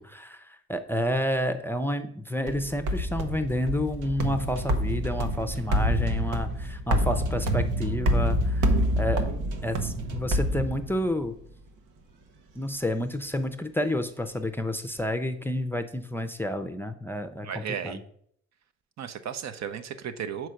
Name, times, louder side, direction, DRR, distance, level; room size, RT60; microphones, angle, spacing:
voice 1, 0.0-8.7 9.0-9.3 9.6-11.3 12.6-18.0, left 1 dB, 5° left, 8 dB, 0.5 m, -30 dB
sound 1, 2.5-11.2, equal, 90° right, 0.9 m, -27 dB
voice 2, 17.4-18.0 19.0-20.5, right 8 dB, 60° right, 10 dB, 0.7 m, -35 dB
5.5 x 4.6 x 6.3 m, 0.67 s
cardioid pair, 90°, 30 cm